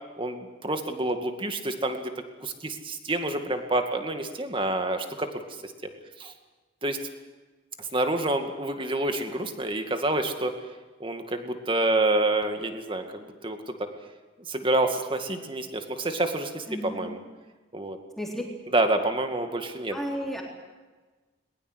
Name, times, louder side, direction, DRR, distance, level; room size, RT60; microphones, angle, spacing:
voice 1, 0.2-2.1 2.4-5.3 5.6-5.7 6.2-6.3 6.8-7.0 7.9-10.5 11.0-13.7 14.5-17.2 17.7-18.0 18.7-20.0, right 2 dB, 30° right, 6 dB, 2.2 m, -28 dB
voice 2, 16.7-17.1 18.2-18.4 19.9-20.4, equal, ahead, -1 dB, 3.9 m, -33 dB
21.0 x 21.0 x 8.1 m, 1.3 s
head